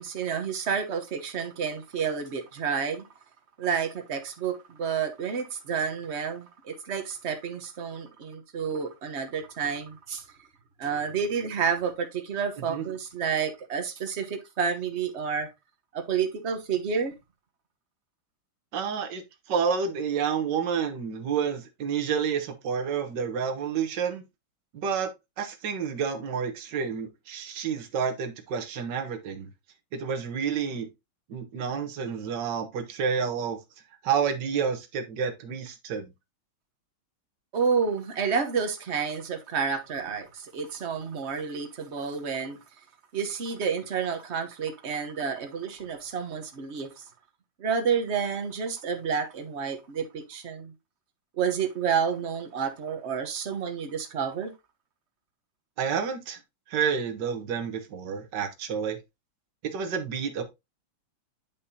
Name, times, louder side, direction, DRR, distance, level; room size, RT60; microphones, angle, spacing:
voice 1, 0.0-3.1 3.6-10.2 10.8-15.5 15.9-17.1 37.5-42.6 43.1-47.0 47.6-50.7 51.4-54.5, right 6 dB, 40° right, 1.0 m, -30 dB
voice 2, 18.7-19.2 19.5-24.2 24.7-25.1 25.4-29.5 29.9-30.9 31.3-33.6 34.0-36.1 55.8-56.4 56.7-59.0 59.7-60.4, right 6 dB, 60° right, 1.7 m, -29 dB
8.6 x 5.3 x 2.7 m
omnidirectional pair, 2.4 m